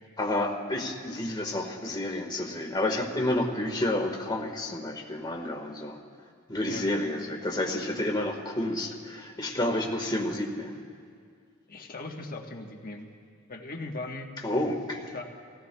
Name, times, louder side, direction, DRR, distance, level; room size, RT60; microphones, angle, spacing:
voice 1, 0.2-6.0 6.5-10.8 14.4-15.1, left 1 dB, 20° left, 1 dB, 1.6 m, -30 dB
voice 2, 11.7-13.1 13.5-14.3 15.1-15.2, left 2 dB, 40° left, 1 dB, 1.3 m, -38 dB
29.0 x 17.5 x 2.3 m, 2.2 s
head